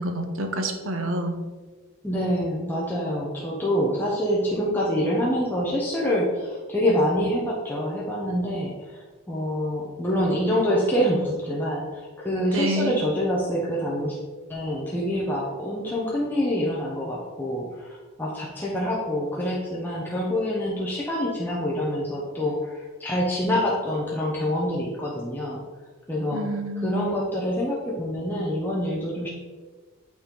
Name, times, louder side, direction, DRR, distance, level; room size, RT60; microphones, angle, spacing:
voice 1, 0.0-1.4 12.5-13.0 26.3-27.1, right 1 dB, 70° right, 5 dB, 1.0 m, -28 dB
voice 2, 2.0-14.2 14.5-25.6 26.1-26.4 26.8-29.3, equal, 10° left, -5 dB, 0.9 m, -26 dB
8.5 x 4.3 x 3.8 m, 1.3 s
head